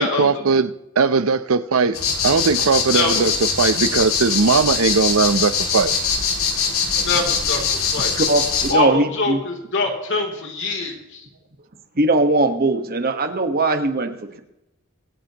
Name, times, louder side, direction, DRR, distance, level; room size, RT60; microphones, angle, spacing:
voice 1, 0.0-2.0 2.2-3.3 3.6-5.9, right 4 dB, 70° right, 0.7 m, -19 dB
sound 1, 1.9-8.7, left 6 dB, 75° left, 2.5 m, -22 dB
voice 2, 2.9-3.3 6.9-8.1 8.7-11.2, left 3 dB, 60° left, 3.1 m, -24 dB
voice 3, 8.2-9.4 11.9-14.4, right 2 dB, 45° right, 1.4 m, -20 dB
24.5 x 8.6 x 3.0 m
head